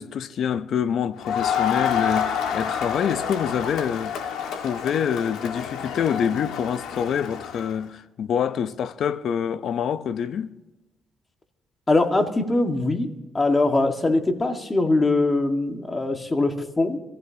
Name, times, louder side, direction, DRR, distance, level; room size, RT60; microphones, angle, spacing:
voice 1, 0.0-4.1 4.5-10.5, left 8 dB, 65° left, 0.7 m, -26 dB
Crowd, 1.2-7.8, left 7 dB, 85° left, 1.8 m, -28 dB
voice 2, 11.9-17.0, left 2 dB, 25° left, 1.8 m, -22 dB
24.0 x 15.0 x 2.9 m
cardioid pair, 90°, 0 cm